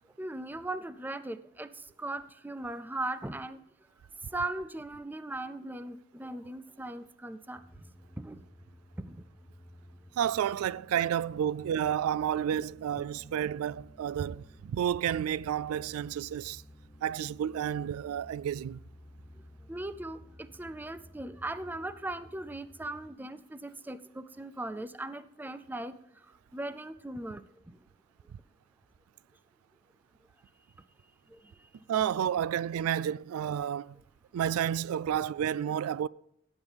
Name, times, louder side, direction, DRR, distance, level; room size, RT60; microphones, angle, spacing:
voice 1, 0.2-3.6 4.3-7.6 8.2-8.4 9.0-9.2 19.7-26.0 26.5-27.8 31.3-31.4, right 2 dB, 10° right, 0.4 m, -38 dB
sound 1, 7.5-23.1, left 1 dB, 15° left, 0.8 m, -54 dB
voice 2, 10.2-16.6 17.0-18.8 31.9-34.0 34.3-36.1, right 9 dB, 85° right, 0.3 m, -31 dB
16.5 x 8.0 x 3.5 m
head